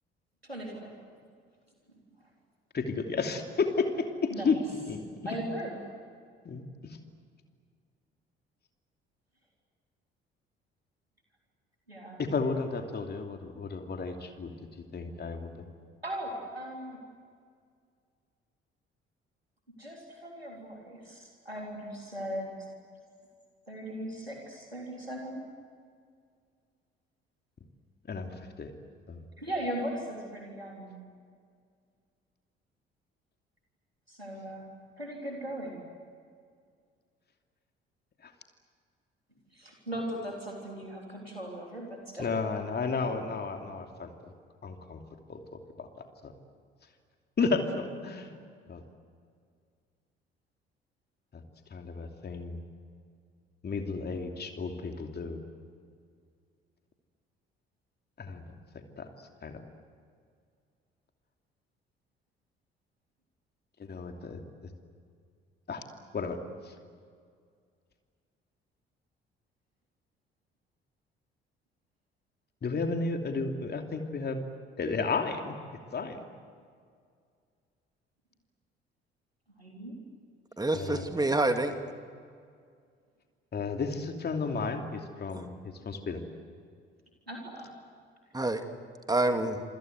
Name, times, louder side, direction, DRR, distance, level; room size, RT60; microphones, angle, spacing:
voice 1, 0.4-0.9 4.3-4.5 5.2-5.8 11.9-12.3 16.0-17.0 19.8-22.5 23.7-25.4 29.4-30.9 34.1-34.6 35.0-35.8 39.5-42.3 79.6-80.0 87.3-87.7, right 1 dB, 90° right, 0 dB, 3.5 m, -38 dB
voice 2, 2.7-4.6 4.9-5.4 6.4-7.0 12.2-14.5 14.9-15.5 28.1-28.7 29.1-29.2 38.2-38.3 42.2-44.1 44.6-45.0 45.3-45.4 45.8-46.3 47.4-48.3 48.7-48.8 51.3-51.4 51.7-52.6 53.6-55.4 58.2-58.4 58.7-59.1 59.4-59.5 63.8-64.7 65.7-65.8 66.1-66.4 66.6-66.7 72.6-74.4 74.8-75.6 75.9-76.2 80.7-81.3 83.5-86.2, left 4 dB, 35° left, 4 dB, 2.8 m, -33 dB
voice 3, 80.6-81.7 88.3-88.6 89.1-89.6, right 2 dB, 15° right, 7 dB, 2.7 m, -27 dB
27.0 x 25.5 x 8.1 m, 2.1 s
figure-of-eight pair, 50°, 30 cm